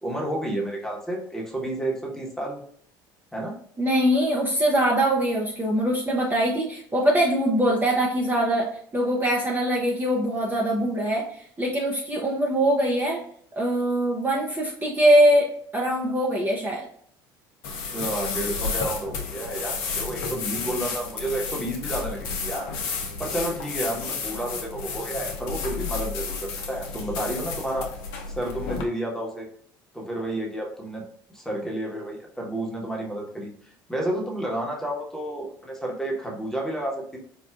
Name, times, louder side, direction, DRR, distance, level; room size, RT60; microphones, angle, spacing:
voice 1, 0.0-2.6 3.3-3.6 17.8-22.7 23.2-27.9 28.3-29.5 29.9-31.0 31.3-37.2, right 1 dB, 5° left, -2 dB, 1.2 m, -31 dB
voice 2, 3.8-13.2 13.6-16.9, right 1 dB, 20° right, -3 dB, 0.7 m, -22 dB
sound 1, 17.6-28.8, left 5 dB, 70° left, 0.7 m, -32 dB
4.5 x 2.3 x 2.4 m, 0.63 s
hypercardioid pair, 65°, 11 cm